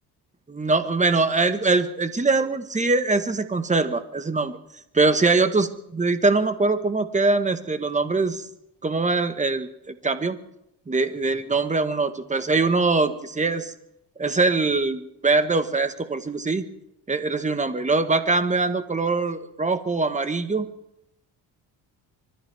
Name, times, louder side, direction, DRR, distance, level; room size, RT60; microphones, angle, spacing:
voice 1, 0.5-4.5 4.9-8.5 8.8-10.4 10.9-13.7 14.2-16.7 17.1-20.7, right 3 dB, 15° right, 9 dB, 1.5 m, -23 dB
25.0 x 14.0 x 3.5 m, 0.79 s
supercardioid pair, 80°, 43 cm